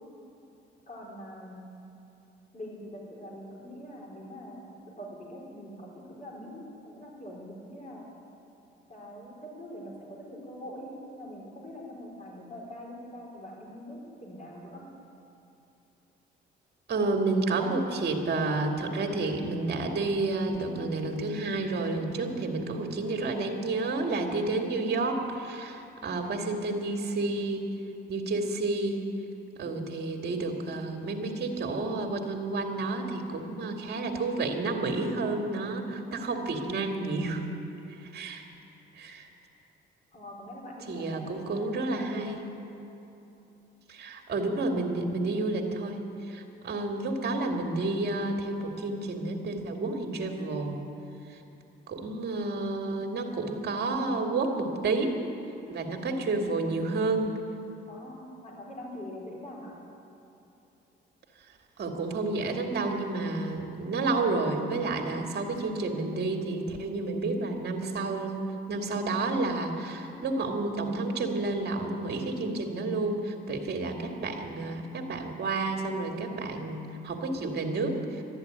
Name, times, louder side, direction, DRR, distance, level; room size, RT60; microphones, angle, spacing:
voice 1, 0.9-1.6 2.5-8.1 8.9-14.8 40.1-42.3 57.9-59.7, equal, 35° left, -3 dB, 4.6 m, -43 dB
voice 2, 16.9-27.7 28.1-29.0 29.6-37.5 38.0-38.4 39.0-39.3 40.9-42.5 43.9-46.0 46.3-50.8 51.3-51.4 51.9-55.2 55.7-57.3 61.8-68.4 68.7-78.2, right 3 dB, 55° right, 3 dB, 2.3 m, -30 dB
13.0 x 10.5 x 9.6 m, 2.9 s
cardioid pair, 90°, 20 cm